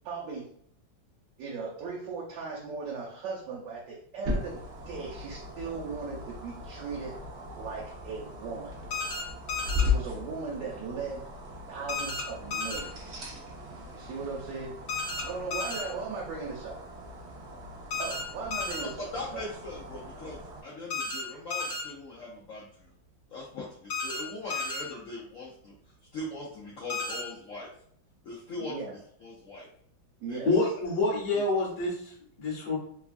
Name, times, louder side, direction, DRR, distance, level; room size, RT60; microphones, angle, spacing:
voice 1, 0.0-0.4 1.4-7.2 7.6-8.8 9.8-11.2 11.7-12.9 13.9-14.7 15.2-16.8 18.0-19.4 28.6-28.9 30.2-30.5, right 4 dB, 75° right, -3 dB, 1.2 m, -38 dB
sound 1, 4.2-20.6, left 3 dB, 90° right, 0.5 m, -37 dB
sound 2, 8.9-9.2 9.5-9.8 11.9-12.2 12.5-12.8 14.9-15.2 15.5-15.8 17.9-18.2 18.5-18.8 20.9-21.2 21.5-21.8 23.9-24.2 24.5-24.8 26.9-27.2, left 3 dB, 65° left, 1.4 m, -32 dB
voice 2, 19.1-22.9 23.3-25.7 26.1-27.7 28.2-29.7 30.3-30.6 31.3-31.4, left 2 dB, 85° left, -5 dB, 0.7 m, -41 dB
voice 3, 30.4-32.8, left 2 dB, 45° left, -5 dB, 1.2 m, -27 dB
3.2 x 2.3 x 2.4 m, 0.66 s
omnidirectional pair, 2.1 m